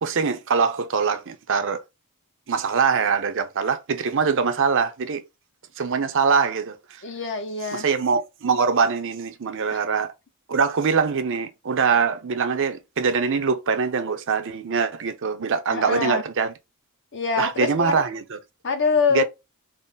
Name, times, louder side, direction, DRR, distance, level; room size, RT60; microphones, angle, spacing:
voice 1, 0.0-1.8 2.5-5.2 5.8-7.0 7.7-10.1 10.5-16.5 17.4-18.4 19.1-19.2, right 5 dB, 60° right, 0.6 m, -23 dB
voice 2, 7.0-7.8 9.7-9.8 15.7-16.2 17.1-18.0 18.6-19.2, left 4 dB, 55° left, 0.9 m, -24 dB
3.8 x 2.1 x 4.0 m
head